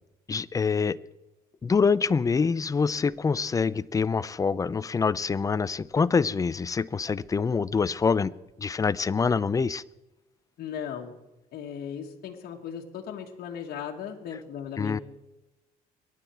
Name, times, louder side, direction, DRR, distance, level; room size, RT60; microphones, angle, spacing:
voice 1, 0.3-1.0 1.6-8.3 8.6-9.8 14.8-15.0, left 5 dB, 20° left, 18 dB, 0.4 m, -25 dB
voice 2, 10.6-11.2 11.5-15.0, left 8 dB, 65° left, 1 dB, 1.7 m, -37 dB
23.0 x 10.0 x 4.6 m, 0.99 s
cardioid pair, 110°, 17 cm